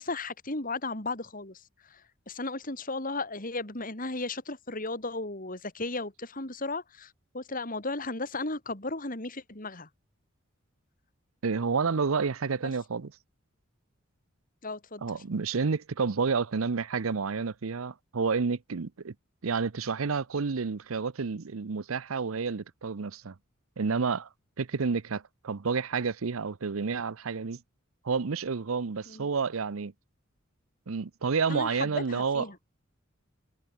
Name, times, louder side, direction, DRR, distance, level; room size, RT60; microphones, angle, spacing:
voice 1, 0.0-1.6 1.9-9.9 14.6-15.0 29.1-29.3 31.5-32.6, left 2 dB, 40° left, 4.1 m, -35 dB
voice 2, 11.4-13.1 15.0-19.1 19.4-23.3 23.8-24.3 24.6-27.6 28.0-29.9 30.9-32.4, right 5 dB, 90° right, 0.7 m, -30 dB
head